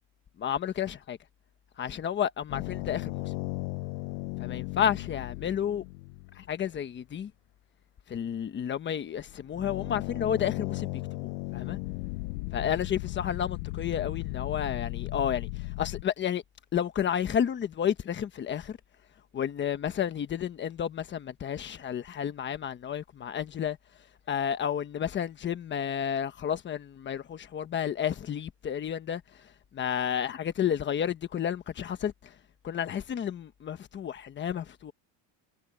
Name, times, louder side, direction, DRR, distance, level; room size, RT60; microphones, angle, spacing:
voice 1, 0.4-1.2 1.8-3.3 4.4-5.8 6.4-7.3 8.1-11.8 12.5-15.5 15.8-16.4 16.7-18.8 19.3-23.8 24.3-29.2 29.7-32.3 32.6-34.9, left 9 dB, 20° left, 1.1 m, -31 dB
sound 1, 2.5-6.6 9.3-16.0, left 24 dB, 90° left, 0.8 m, -36 dB
cardioid pair, 170°, 49 cm